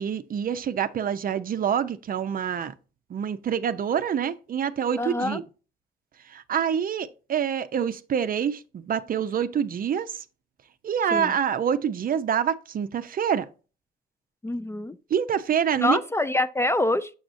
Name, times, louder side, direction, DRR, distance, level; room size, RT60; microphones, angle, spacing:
voice 1, 0.0-2.7 3.1-5.4 6.3-10.1 10.8-13.5 15.1-16.0, right 8 dB, 45° right, 0.5 m, -26 dB
voice 2, 5.0-5.4 11.1-11.3 14.4-15.0 15.8-17.1, left 1 dB, 15° left, 0.3 m, -25 dB
7.0 x 6.1 x 2.6 m
cardioid pair, 90°, 20 cm